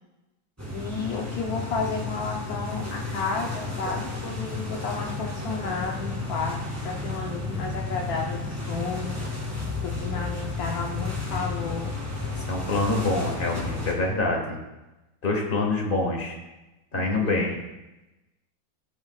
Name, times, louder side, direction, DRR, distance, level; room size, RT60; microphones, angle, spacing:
sound 1, 0.6-13.9, left 3 dB, 10° right, 2.1 m, -32 dB
voice 1, 0.7-9.2 9.8-11.9 17.2-17.5, left 4 dB, 60° left, 0 dB, 1.2 m, -32 dB
voice 2, 12.5-14.6 15.2-16.4 16.9-17.5, left 2 dB, 30° left, 1 dB, 1.8 m, -26 dB
14.5 x 9.5 x 2.4 m, 1.0 s
omnidirectional pair, 2.1 m